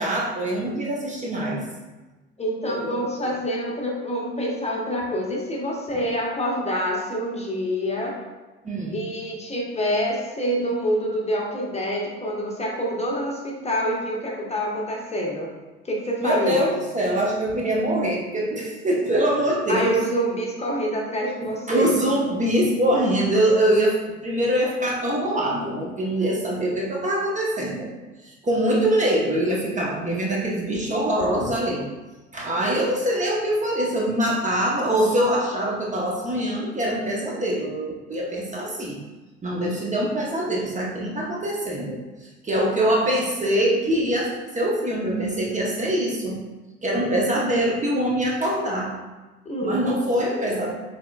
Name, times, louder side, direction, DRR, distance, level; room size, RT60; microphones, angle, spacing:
voice 1, 0.0-1.6 2.7-3.0 8.6-9.0 16.2-20.0 21.4-27.9 28.4-31.9 32.3-39.0 39.4-42.0 42.4-46.4 46.8-48.9 49.6-50.8, right 1 dB, 20° right, -3 dB, 0.9 m, -23 dB
voice 2, 2.4-8.2 8.9-15.5 15.8-16.7 19.7-22.0 49.4-49.9, equal, 20° left, -2 dB, 1.0 m, -26 dB
5.9 x 3.5 x 2.3 m, 1.2 s
figure-of-eight pair, 65°, 34 cm